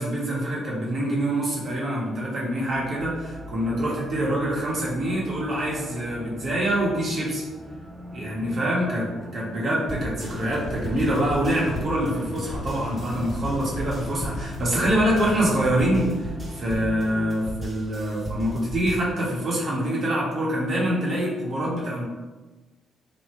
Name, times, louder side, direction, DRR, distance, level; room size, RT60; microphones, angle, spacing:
voice 1, 0.0-7.4 8.1-9.1 9.3-22.0, right 1 dB, 50° right, -5 dB, 1.4 m, -25 dB
sound 1, 2.7-17.3, equal, 10° left, 0.7 m, -41 dB
sound 2, 9.9-19.0, equal, 20° right, 1.0 m, -36 dB
sound 3, 10.2-15.6, left 3 dB, 75° left, 0.4 m, -37 dB
3.3 x 2.7 x 4.3 m, 1.2 s
cardioid pair, 90°, 0 cm